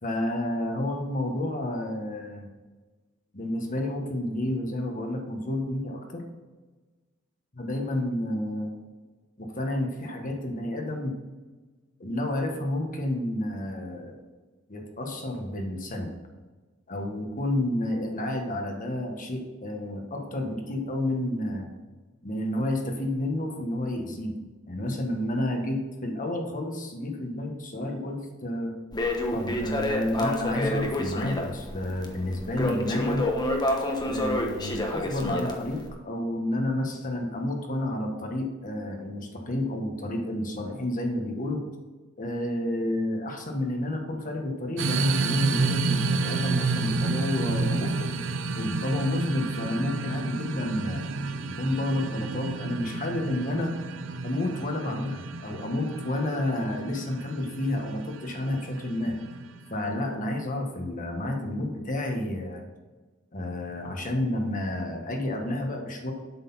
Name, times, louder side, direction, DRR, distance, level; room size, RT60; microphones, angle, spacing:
voice 1, 0.0-2.5 3.3-6.2 7.5-8.7 9.4-11.2 12.0-14.2 14.7-16.1 16.9-21.7 22.2-24.3 24.7-28.7 29.3-33.2 34.0-41.6 42.2-48.1 48.5-51.0 51.6-53.7 54.2-59.2 59.7-62.6 63.3-66.1, left 1 dB, 40° left, 2 dB, 1.4 m, -30 dB
Crackle, 28.9-35.9, left 1 dB, 20° left, 1.2 m, -29 dB
sound 1, 44.8-59.9, right 3 dB, 65° right, 0.7 m, -30 dB
8.1 x 6.5 x 5.6 m, 1.3 s
head